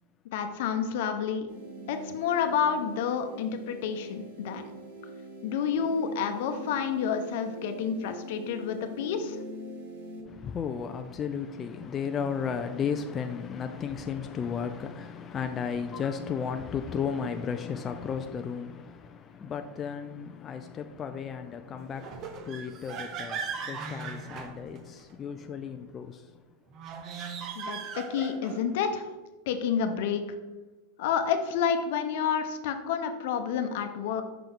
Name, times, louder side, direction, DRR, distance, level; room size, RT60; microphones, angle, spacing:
voice 1, 0.3-1.5 1.9-4.6 5.4-9.4 27.5-29.0 29.5-30.2 31.0-34.2, left 7 dB, 70° left, 0.8 m, -29 dB
sound 1, 1.5-10.2, equal, 80° right, 1.7 m, -43 dB
voice 2, 10.3-26.2, left 7 dB, 25° left, 0.3 m, -34 dB
sound 2, 22.0-25.1 26.7-28.7, right 5 dB, 40° right, 0.7 m, -38 dB
5.8 x 5.2 x 3.8 m
supercardioid pair, 135°, 0 cm